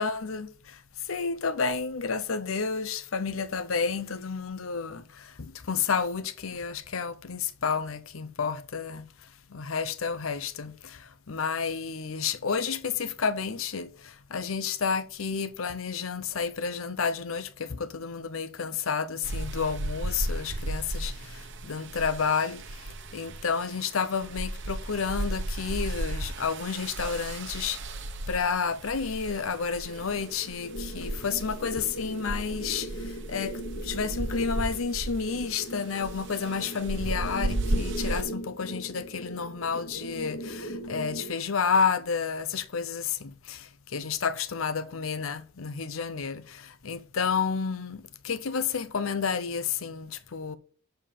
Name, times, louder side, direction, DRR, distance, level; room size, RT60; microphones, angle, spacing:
voice 1, 0.0-9.1 9.5-27.8 28.3-50.6, left 5 dB, 75° left, 0.7 m, -31 dB
sound 1, 19.2-38.2, right 1 dB, 60° right, 1.0 m, -35 dB
sound 2, 29.8-41.3, right 1 dB, 60° left, 1.5 m, -39 dB
7.4 x 4.5 x 6.9 m
head